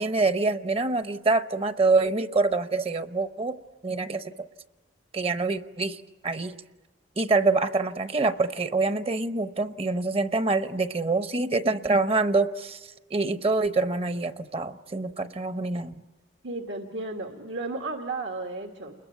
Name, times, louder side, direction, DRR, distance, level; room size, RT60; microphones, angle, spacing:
voice 1, 0.0-4.3 5.1-6.6 7.2-15.9, right 3 dB, 35° right, 12 dB, 0.8 m, -26 dB
voice 2, 16.4-19.0, right 2 dB, 80° right, 4 dB, 1.9 m, -34 dB
29.5 x 21.5 x 9.2 m, 1.2 s
head